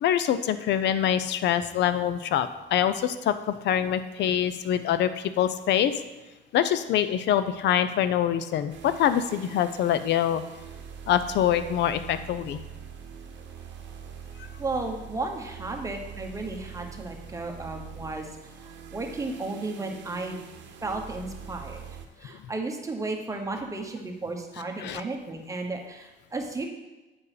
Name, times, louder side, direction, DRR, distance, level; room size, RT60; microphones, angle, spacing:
voice 1, 0.0-5.9 6.5-10.4 11.1-12.6 14.4-14.5 24.8-25.0, left 10 dB, 65° left, 12 dB, 0.6 m, -25 dB
sound 1, 8.7-22.1, right 7 dB, 75° right, 0.8 m, -43 dB
voice 2, 14.6-20.4 20.8-26.7, right 2 dB, 15° right, 2 dB, 1.1 m, -34 dB
8.7 x 4.7 x 4.9 m, 1.1 s
cardioid pair, 115°, 19 cm